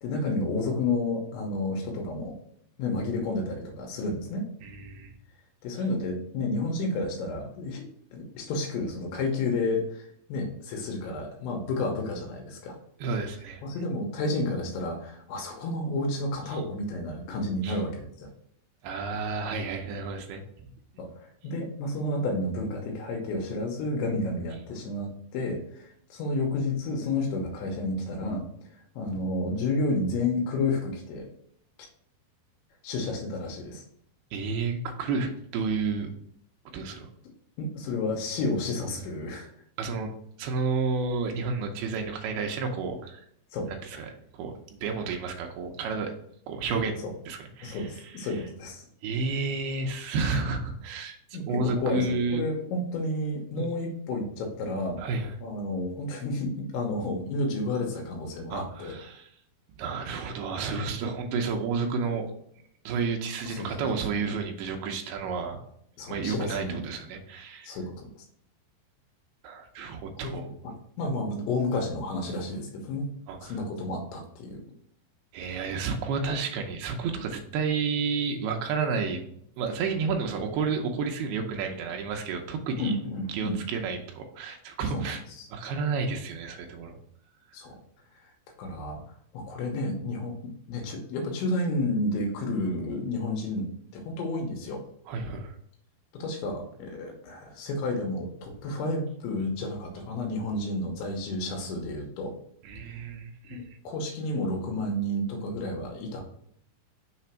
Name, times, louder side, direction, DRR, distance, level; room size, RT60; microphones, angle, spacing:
voice 1, 0.0-2.4 2.8-4.5 5.6-7.8 8.1-12.7 13.6-18.3 21.0-21.1 21.4-28.4 29.0-31.3 32.8-33.8 37.6-39.5 43.5-43.7 47.6-48.9 51.3-55.0 55.4-58.9 63.5-63.7 64.1-64.2 66.0-66.8 67.6-68.1 70.6-73.1 73.4-74.6 82.8-83.6 84.9-85.0 85.4-85.5 87.5-87.8 88.6-89.0 89.3-90.3 90.7-93.7 93.9-94.8 96.1-102.3 103.5-106.2, left 2 dB, 90° left, 1 dB, 3.3 m, -31 dB
voice 2, 4.6-5.1 13.0-13.6 16.5-16.6 17.6-17.8 18.8-20.7 34.3-36.1 36.7-37.1 39.8-40.1 40.4-43.2 43.7-46.1 46.5-48.4 49.0-51.2 51.5-52.4 53.6-53.7 55.0-55.3 58.5-59.3 59.8-62.3 62.9-65.6 66.1-67.8 69.4-70.4 73.3-73.6 75.3-79.3 79.6-82.9 83.3-85.2 85.5-87.0 95.1-95.6 102.6-103.6, right 4 dB, 85° right, 3 dB, 2.1 m, -31 dB
6.9 x 3.3 x 4.4 m, 0.70 s
omnidirectional pair, 5.2 m